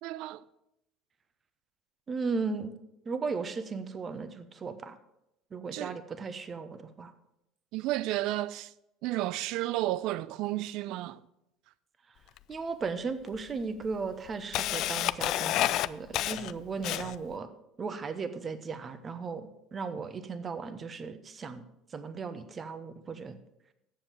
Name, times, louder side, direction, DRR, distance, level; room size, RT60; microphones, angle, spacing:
voice 1, 0.0-0.4 5.7-6.0 7.7-8.7 9.0-11.2, right 16 dB, 65° right, 0.4 m, -32 dB
voice 2, 2.1-2.7 3.0-5.0 5.5-7.1 12.5-17.5 17.8-21.6 21.9-23.4, right 4 dB, 35° right, 1.0 m, -36 dB
Camera, 12.4-12.5 13.3-13.4 13.9-17.3, left 14 dB, 60° left, 0.3 m, -30 dB
7.8 x 7.1 x 6.8 m
hypercardioid pair, 65°, 0 cm